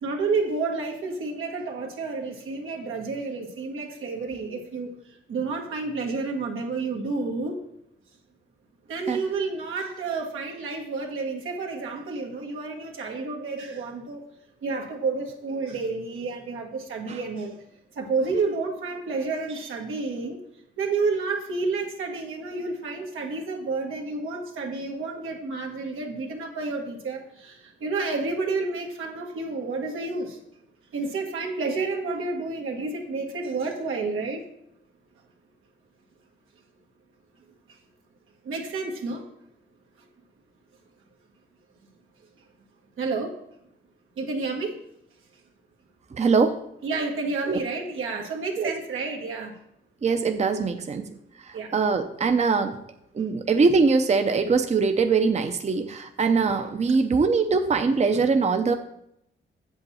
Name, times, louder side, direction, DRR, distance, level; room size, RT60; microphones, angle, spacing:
voice 1, 0.0-4.9 5.3-7.5 8.9-14.2 14.6-17.5 17.9-20.4 20.8-30.4 30.9-34.4 38.4-39.2 43.0-43.3 44.2-44.7 46.8-49.5 51.5-51.7, right 3 dB, 90° right, 1 dB, 1.6 m, -30 dB
voice 2, 46.1-46.6 47.5-47.6 48.6-48.7 50.0-51.1 51.4-52.8 53.1-58.8, right 4 dB, 35° right, 7 dB, 0.6 m, -22 dB
8.1 x 7.3 x 4.2 m, 0.77 s
cardioid pair, 85°, 20 cm